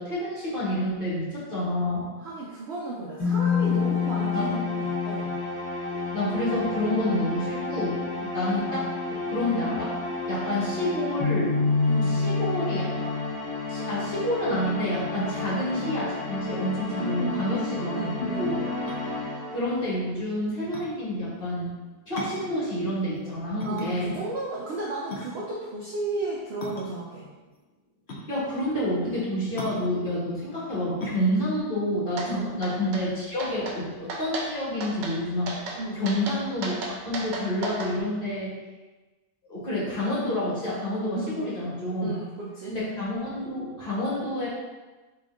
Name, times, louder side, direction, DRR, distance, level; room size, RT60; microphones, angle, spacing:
voice 1, 0.0-2.1 4.3-4.5 6.1-8.0 8.3-10.0 10.3-11.6 12.1-13.1 13.7-18.6 19.5-21.7 22.1-24.2 28.3-35.5 35.9-38.5 39.5-42.1 42.7-44.5, left 1 dB, 30° left, -9 dB, 1.6 m, -28 dB
voice 2, 2.2-5.3 8.1-8.4 11.9-12.2 16.9-18.5 23.6-27.3 32.3-32.6 35.8-36.2 41.2-41.5 42.0-42.8, right 2 dB, 65° right, -4 dB, 0.6 m, -34 dB
sound 1, 3.2-19.9, left 4 dB, 75° left, 2.2 m, -29 dB
sound 2, 18.9-33.1, left 2 dB, 55° left, 0.8 m, -40 dB
sound 3, 32.2-32.3 32.6-33.0 33.4-33.8 34.1-34.5 34.8-35.2 35.5-35.8 36.1-37.9, right 2 dB, 85° right, 1.4 m, -33 dB
4.3 x 3.3 x 3.7 m, 1.2 s
omnidirectional pair, 1.8 m